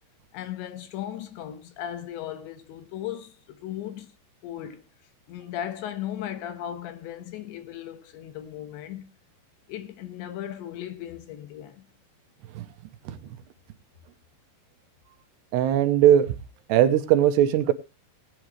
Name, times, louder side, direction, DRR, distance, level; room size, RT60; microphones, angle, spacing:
voice 1, 0.3-4.1 4.4-4.9 5.3-9.1 9.7-11.9, left 11 dB, 80° left, 3.5 m, -36 dB
voice 2, 15.5-16.3 16.7-17.7, right 11 dB, 80° right, 2.8 m, -19 dB
19.0 x 9.1 x 3.1 m
omnidirectional pair, 5.1 m